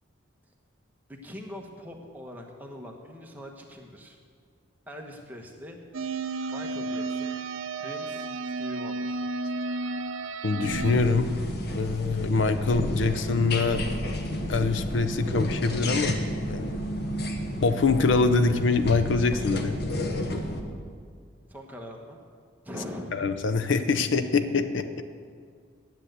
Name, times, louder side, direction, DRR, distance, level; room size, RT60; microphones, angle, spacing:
voice 1, 1.2-4.2 4.9-5.8 6.5-7.4 7.8-9.2 21.5-22.2 22.6-23.2, equal, 10° right, 1 dB, 1.0 m, -42 dB
sound 1, 5.9-10.9, right 3 dB, 75° right, 0.6 m, -32 dB
voice 2, 10.4-11.3 11.7-13.8 14.5-16.2 16.5-16.7 17.6-19.8 23.1-24.8, left 4 dB, 65° left, 10 dB, 0.6 m, -24 dB
sound 2, 10.6-20.6, left 1 dB, 50° left, 1.0 m, -31 dB
10.0 x 7.6 x 8.1 m, 2.1 s
head